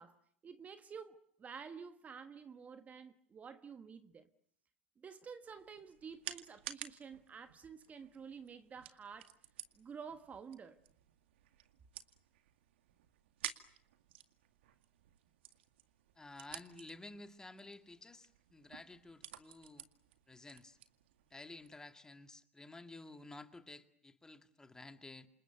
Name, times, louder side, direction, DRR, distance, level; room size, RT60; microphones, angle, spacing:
voice 1, 0.0-4.3 5.0-9.3 9.7-10.8, right 6 dB, 20° right, 1.4 m, -51 dB
sound 1, 5.4-21.8, right 12 dB, 65° right, 2.1 m, -53 dB
voice 2, 16.2-19.9 20.3-20.8 21.3-25.3, left 2 dB, 10° left, 2.0 m, -53 dB
28.5 x 27.5 x 6.9 m
hypercardioid pair, 95°, 7 cm